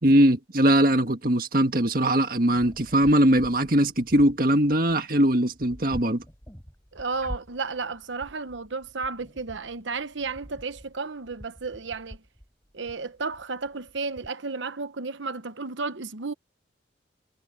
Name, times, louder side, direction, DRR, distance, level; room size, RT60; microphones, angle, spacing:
voice 1, 0.0-6.2, right 1 dB, 50° right, 1.8 m, -21 dB
sound 1, 2.6-14.3, equal, 15° left, 7.0 m, -46 dB
voice 2, 6.9-12.2 12.7-16.3, right 4 dB, 80° right, 1.1 m, -33 dB
head